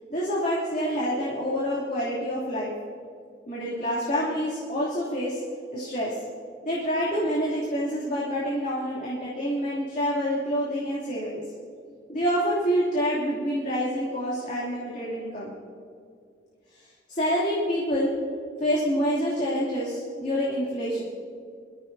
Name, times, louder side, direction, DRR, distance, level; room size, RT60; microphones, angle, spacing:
voice 1, 0.1-2.7 3.5-5.4 5.7-6.1 6.6-11.4 12.1-15.5 16.7-18.1 18.6-21.0, equal, 45° left, -7 dB, 2.9 m, -27 dB
23.5 x 14.0 x 2.7 m, 2.3 s
head